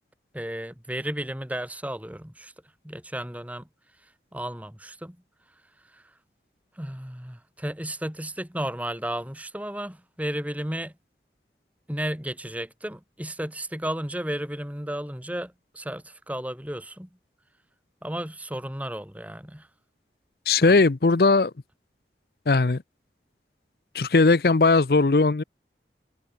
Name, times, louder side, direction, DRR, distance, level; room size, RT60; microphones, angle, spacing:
voice 1, 0.3-2.5 2.8-3.7 4.3-5.2 5.9-6.0 6.8-10.9 11.9-17.1 18.0-19.7 20.6-20.8, right 1 dB, 10° right, 2.3 m, -33 dB
voice 2, 20.5-21.5 22.5-22.8 23.9-25.4, left 3 dB, 60° left, 0.6 m, -19 dB
head